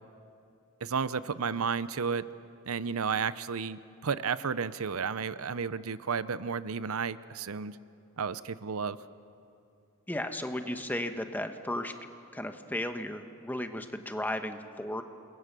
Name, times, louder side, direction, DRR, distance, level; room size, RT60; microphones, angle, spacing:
voice 1, 0.8-2.2 2.7-7.8 8.2-9.0, right 6 dB, 85° right, 15 dB, 0.7 m, -32 dB
voice 2, 10.1-11.9 12.3-15.0, left 1 dB, 10° left, 7 dB, 1.1 m, -34 dB
28.5 x 22.5 x 6.8 m, 2.5 s
head